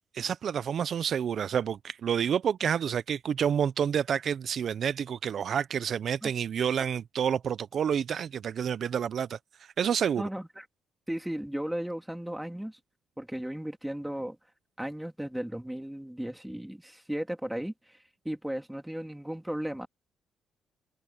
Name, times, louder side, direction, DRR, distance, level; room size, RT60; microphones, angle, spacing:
voice 1, 0.1-10.2, right 8 dB, 60° right, 0.5 m, -29 dB
voice 2, 10.2-10.6 11.1-12.8 13.2-14.4 14.8-18.0 18.2-19.9, right 1 dB, 5° right, 2.9 m, -35 dB
cardioid pair, 90°, 0 cm